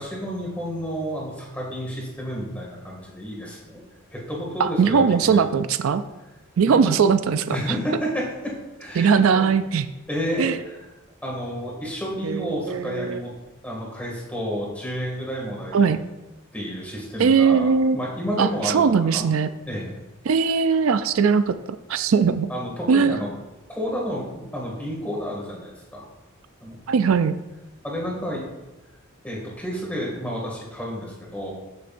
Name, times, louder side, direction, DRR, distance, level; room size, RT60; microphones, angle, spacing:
voice 1, 0.0-3.8 4.1-5.1 5.3-5.4 6.6-6.9 7.5-8.5 8.8-9.5 10.1-10.8 11.2-13.3 13.6-15.9 16.5-19.2 19.7-19.9 22.5-23.3 23.7-26.1 26.6-26.8 27.8-28.4 29.2-31.5, equal, 5° left, -3 dB, 2.2 m, -30 dB
voice 2, 4.6-6.0 6.6-7.8 9.0-9.9 10.4-10.6 12.2-13.2 15.7-16.0 17.2-18.0 18.4-19.5 20.3-22.5 22.9-23.2 26.9-27.4, right 6 dB, 75° right, 11 dB, 0.4 m, -20 dB
13.0 x 6.4 x 2.6 m, 1.1 s
head